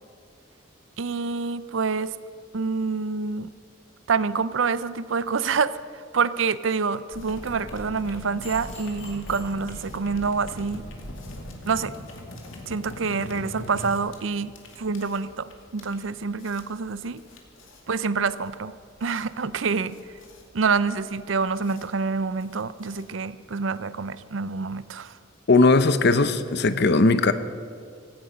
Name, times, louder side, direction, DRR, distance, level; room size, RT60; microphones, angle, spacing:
voice 1, 1.0-2.1 2.5-3.5 4.1-10.8 11.7-11.9 12.7-14.5 14.8-17.2 17.9-18.7 19.0-20.0 20.5-25.1, right 5 dB, 75° right, 16 dB, 0.6 m, -27 dB
sound 1, 7.1-11.4, left 1 dB, 35° left, 4.2 m, -42 dB
sound 2, 7.2-23.5, left 1 dB, 85° left, 2.4 m, -43 dB
voice 2, 25.5-27.3, left 3 dB, 60° left, 12 dB, 0.8 m, -18 dB
17.0 x 15.5 x 5.3 m, 2.4 s
head